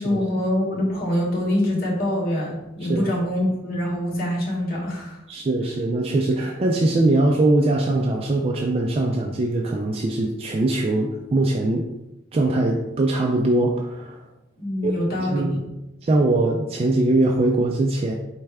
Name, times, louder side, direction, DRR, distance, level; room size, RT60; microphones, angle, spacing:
voice 1, 0.0-5.2 14.6-15.6, left 1 dB, 50° left, -4 dB, 1.4 m, -24 dB
voice 2, 5.3-11.9 12.3-14.2 14.8-14.9 15.2-15.6 16.0-18.1, right 2 dB, 30° right, 0 dB, 0.3 m, -21 dB
4.6 x 3.1 x 3.4 m, 0.94 s
head